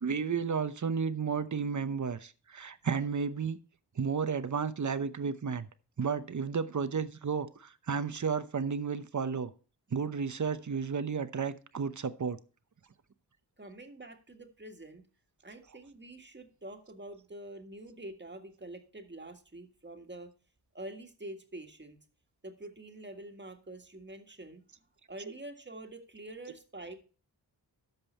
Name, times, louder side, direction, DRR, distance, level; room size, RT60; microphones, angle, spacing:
voice 1, 0.0-3.6 4.0-5.7 6.0-9.5 9.9-12.4 25.2-25.3 26.5-26.6, right 6 dB, 40° right, 13 dB, 0.9 m, -32 dB
voice 2, 13.6-15.1 15.4-20.3 20.7-22.0 22.4-24.6 25.1-27.0, right 1 dB, 25° right, 5 dB, 1.8 m, -46 dB
13.5 x 5.4 x 4.3 m, 0.37 s
cardioid pair, 50°, 43 cm